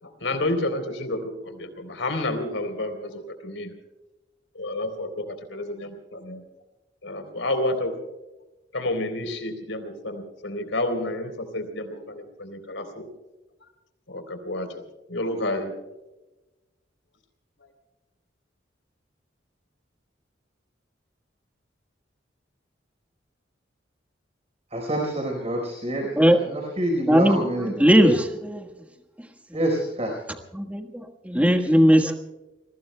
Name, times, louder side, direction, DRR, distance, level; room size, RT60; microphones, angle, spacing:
voice 1, 0.0-3.7 4.5-6.4 7.0-8.0 8.7-13.1 14.1-14.8 15.1-15.7 17.6-17.7, left 1 dB, 85° left, 7 dB, 3.6 m, -30 dB
voice 2, 24.7-27.7 29.5-30.1, right 1 dB, 35° right, 0 dB, 4.3 m, -27 dB
voice 3, 27.0-28.7 30.5-32.1, equal, 10° right, 4 dB, 1.4 m, -19 dB
30.0 x 22.0 x 2.2 m, 1.1 s
head